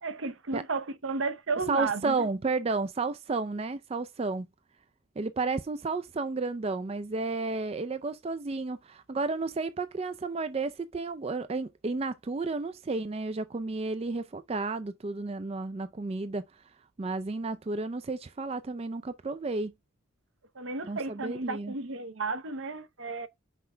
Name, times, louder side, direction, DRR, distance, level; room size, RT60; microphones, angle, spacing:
voice 1, 0.0-2.3 20.6-23.3, right 3 dB, 65° right, 0.8 m, -33 dB
voice 2, 1.7-4.5 5.2-16.6 17.0-19.7 20.8-21.7, right 3 dB, 30° right, 0.3 m, -32 dB
5.8 x 5.5 x 3.3 m
head